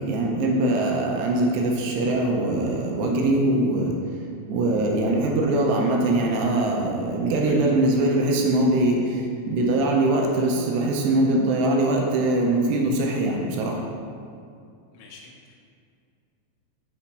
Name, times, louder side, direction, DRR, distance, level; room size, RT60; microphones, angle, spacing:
voice 1, 0.0-4.0 4.5-13.8, right 2 dB, 85° right, 0 dB, 2.8 m, -22 dB
voice 2, 14.9-15.6, left 4 dB, 85° left, -2 dB, 3.1 m, -47 dB
9.0 x 4.2 x 4.8 m, 2.4 s
omnidirectional pair, 5.1 m